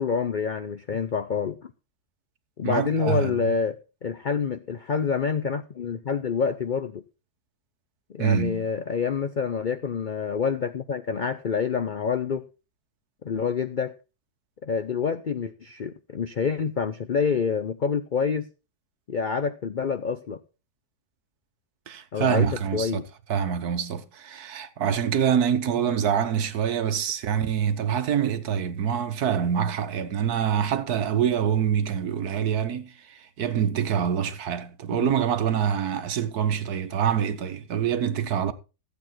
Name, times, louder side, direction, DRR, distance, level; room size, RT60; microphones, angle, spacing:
voice 1, 0.0-1.6 2.6-3.8 4.0-7.0 8.1-12.4 13.2-13.9 14.6-18.5 19.1-20.4 22.1-23.1 25.8-25.9 34.9-35.2, left 6 dB, 75° left, 0.4 m, -27 dB
voice 2, 2.6-3.3 8.2-8.6 21.9-22.9 23.3-38.5, right 8 dB, 70° right, 1.5 m, -25 dB
14.5 x 8.2 x 4.4 m
omnidirectional pair, 1.8 m